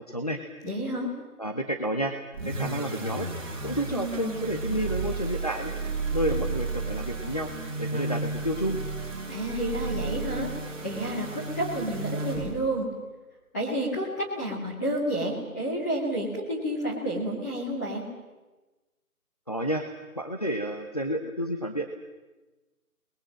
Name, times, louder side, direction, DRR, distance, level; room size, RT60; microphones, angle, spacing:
voice 1, 0.1-0.4 1.4-2.1 2.4-3.3 3.6-5.7 6.1-7.5 7.8-8.8 19.5-19.9 20.1-21.9, equal, 25° left, 3 dB, 0.9 m, -30 dB
voice 2, 0.6-1.1 9.3-10.5 10.8-12.9 13.5-18.1, right 1 dB, 10° left, -7 dB, 2.7 m, -30 dB
sound 1, 2.3-12.7, right 3 dB, 15° right, 5.8 m, -33 dB
28.5 x 21.0 x 7.6 m, 1.2 s
figure-of-eight pair, 175°, 44 cm